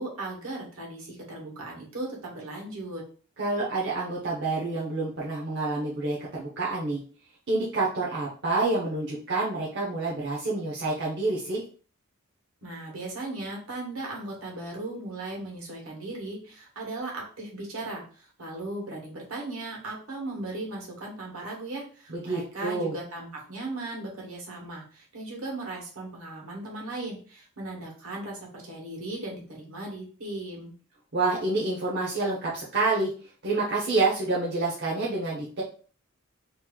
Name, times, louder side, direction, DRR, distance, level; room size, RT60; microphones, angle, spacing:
voice 1, 0.0-3.0 12.6-30.7, right 2 dB, 80° right, -1 dB, 1.5 m, -37 dB
voice 2, 3.4-7.0 7.5-11.6 22.1-22.9 31.1-33.1 33.4-35.6, right 3 dB, 55° right, -5 dB, 0.8 m, -28 dB
3.1 x 2.6 x 3.7 m, 0.40 s
head